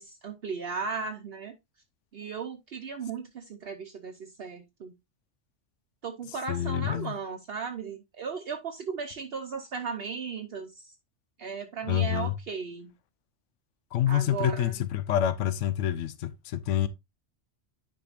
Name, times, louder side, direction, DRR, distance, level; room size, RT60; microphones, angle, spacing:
voice 1, 0.0-1.6 2.1-4.9 6.0-10.9 11.4-12.9 14.1-14.8, right 5 dB, 60° right, 0.9 m, -36 dB
voice 2, 6.5-7.1 11.9-12.3 13.9-16.9, left 11 dB, 85° left, 1.0 m, -27 dB
10.0 x 5.1 x 2.4 m
omnidirectional pair, 1.2 m